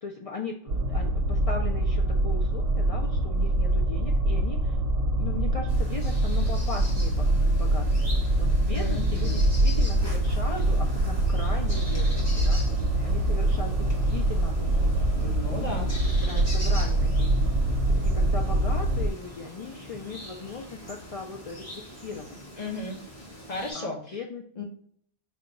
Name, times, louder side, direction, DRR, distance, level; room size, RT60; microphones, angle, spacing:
voice 1, 0.0-4.8 5.2-7.9 8.4-22.4 23.7-24.5, left 4 dB, 60° left, 0 dB, 0.3 m, -38 dB
sound 1, 0.7-19.1, right 1 dB, 65° right, 0.7 m, -24 dB
sound 2, 5.7-23.7, equal, 15° left, 1.2 m, -43 dB
voice 2, 8.7-9.4 15.2-15.9 22.6-23.0 23.5-24.2 24.6-24.7, left 2 dB, 45° left, 0 dB, 0.9 m, -35 dB
4.8 x 2.2 x 3.9 m, 0.63 s
omnidirectional pair, 1.1 m